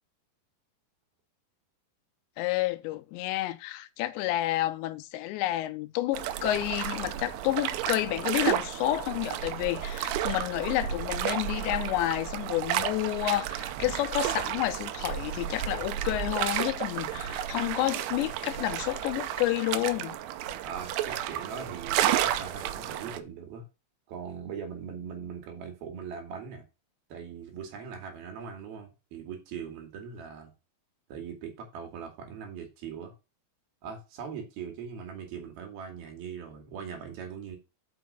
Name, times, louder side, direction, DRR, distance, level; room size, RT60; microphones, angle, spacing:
voice 1, 2.4-20.2, left 15 dB, 85° left, 2.9 m, -30 dB
sound 1, 6.1-23.2, right 11 dB, 80° right, 2.7 m, -32 dB
voice 2, 20.6-23.6 24.1-26.6 27.1-30.5 31.1-33.1 33.8-37.6, right 7 dB, 65° right, 3.4 m, -41 dB
6.2 x 5.7 x 5.3 m
omnidirectional pair, 5.1 m